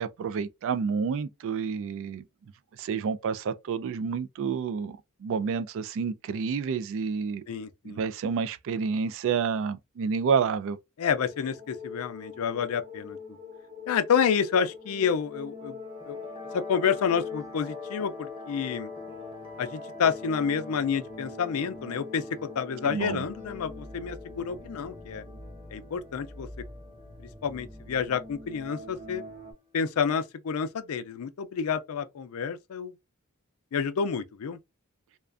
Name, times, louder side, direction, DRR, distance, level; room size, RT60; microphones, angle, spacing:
voice 1, 0.0-2.2 2.8-7.4 7.8-10.8 22.8-23.2, right 6 dB, 65° right, 0.3 m, -29 dB
voice 2, 7.5-8.0 11.0-13.2 13.9-15.8 16.0-16.2 16.5-18.9 19.6-22.2 22.6-25.2 25.7-26.5 27.4-29.2 29.7-32.9 33.7-34.6, left 6 dB, 70° left, 0.4 m, -29 dB
sound 1, 11.1-29.5, left 3 dB, 35° right, 0.7 m, -43 dB
sound 2, 15.9-30.0, left 3 dB, 25° left, 0.7 m, -47 dB
2.4 x 2.2 x 2.4 m
head